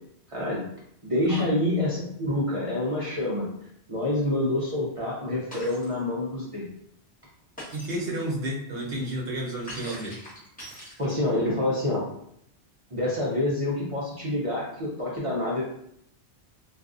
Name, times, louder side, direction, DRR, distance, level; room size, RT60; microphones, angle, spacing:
voice 1, 0.3-0.6 1.0-3.5 3.9-6.7 11.0-12.1 12.9-15.6, left 1 dB, 45° right, -6 dB, 0.4 m, -27 dB
Shatter, 5.5-6.0 7.6-8.1 9.7-11.4, equal, 10° left, 0.8 m, -42 dB
voice 2, 7.7-10.2, right 1 dB, 65° right, -3 dB, 0.9 m, -31 dB
2.4 x 2.4 x 2.4 m, 0.73 s
omnidirectional pair, 1.1 m